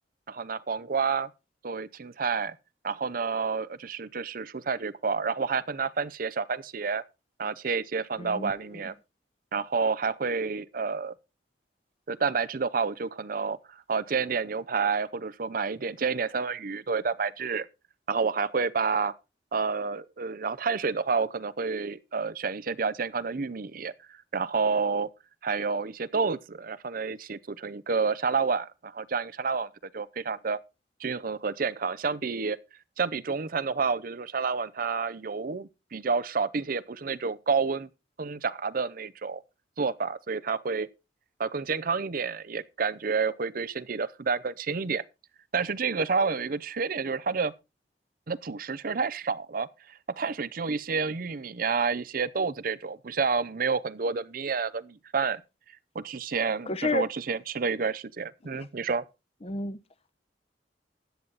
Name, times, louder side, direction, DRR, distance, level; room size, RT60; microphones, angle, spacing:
voice 1, 0.3-1.3 1.6-2.6 2.8-7.0 7.4-8.9 9.5-11.1 12.1-17.7 18.1-19.1 19.5-23.9 24.3-25.1 25.4-29.7 29.9-30.6 31.0-32.6 33.0-37.9 38.2-39.4 39.8-40.9 41.4-45.0 45.5-47.5 48.3-55.4 55.9-59.0, right 5 dB, 50° right, 0.6 m, -29 dB
voice 2, 8.2-8.5 56.7-57.1 59.4-59.8, left 2 dB, 35° left, 0.9 m, -30 dB
13.5 x 9.3 x 4.0 m
head